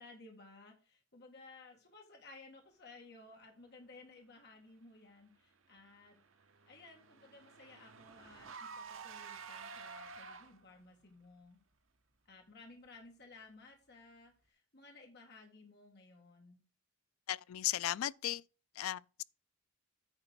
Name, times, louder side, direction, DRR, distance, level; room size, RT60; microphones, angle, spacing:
voice 1, 0.0-6.2 6.7-11.6 12.3-16.6, left 3 dB, 55° left, 1.9 m, -57 dB
Car / Engine, 5.8-10.8, right 5 dB, 65° right, 1.0 m, -50 dB
voice 2, 17.3-18.4 18.8-19.2, left 13 dB, 80° left, 0.3 m, -36 dB
9.7 x 3.9 x 5.9 m
head